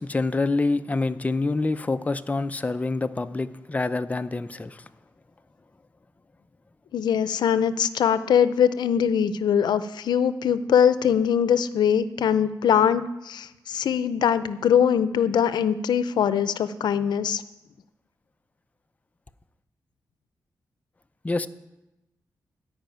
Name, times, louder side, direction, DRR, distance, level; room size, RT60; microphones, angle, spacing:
voice 1, 0.0-4.9 21.2-21.5, left 3 dB, 20° left, 10 dB, 0.6 m, -26 dB
voice 2, 6.9-17.4, left 8 dB, 90° left, 13 dB, 0.6 m, -22 dB
14.0 x 5.4 x 9.2 m, 0.97 s
cardioid pair, 90°, 7 cm